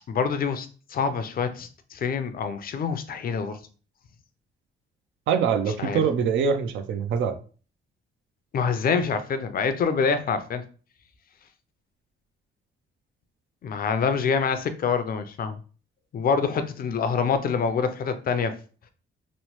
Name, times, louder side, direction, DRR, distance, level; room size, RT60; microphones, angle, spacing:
voice 1, 0.1-3.6 5.8-6.0 8.5-10.6 13.6-15.6 16.1-18.5, left 5 dB, 50° left, 10 dB, 0.5 m, -26 dB
voice 2, 5.3-7.3, right 6 dB, 75° right, 8 dB, 0.5 m, -24 dB
3.0 x 2.0 x 3.0 m, 0.38 s
cardioid pair, 90°, 20 cm